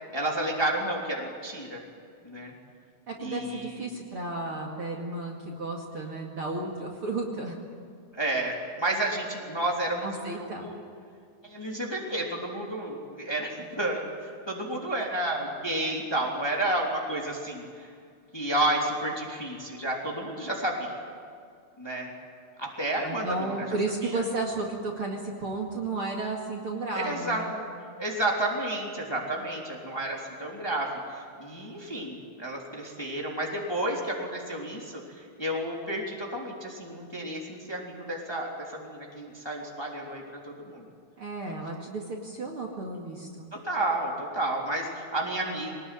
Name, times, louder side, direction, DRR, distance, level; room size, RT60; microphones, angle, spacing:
voice 1, 0.1-1.8 2.2-2.5 3.2-3.9 8.1-10.7 11.4-17.9 18.3-20.9 21.8-22.1 22.6-23.7 24.0-24.2 26.9-27.6 28.0-40.8 43.5-45.7, right 1 dB, 5° left, -2 dB, 2.9 m, -31 dB
voice 2, 3.1-7.6 10.0-10.7 23.0-27.5 41.2-43.5, right 2 dB, 40° right, -1 dB, 2.8 m, -33 dB
24.0 x 19.5 x 9.3 m, 2.2 s
omnidirectional pair, 3.9 m